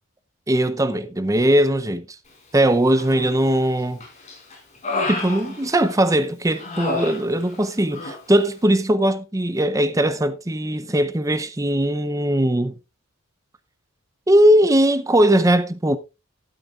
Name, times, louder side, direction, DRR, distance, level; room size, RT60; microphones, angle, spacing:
voice 1, 0.5-2.0 2.5-4.0 5.1-12.7 14.3-16.0, right 1 dB, 15° right, 0.6 m, -19 dB
Human voice, 3.0-3.6 4.0-6.1 6.6-7.7 7.9-8.2, left 3 dB, 35° left, 5.0 m, -30 dB
13.0 x 11.5 x 2.4 m
head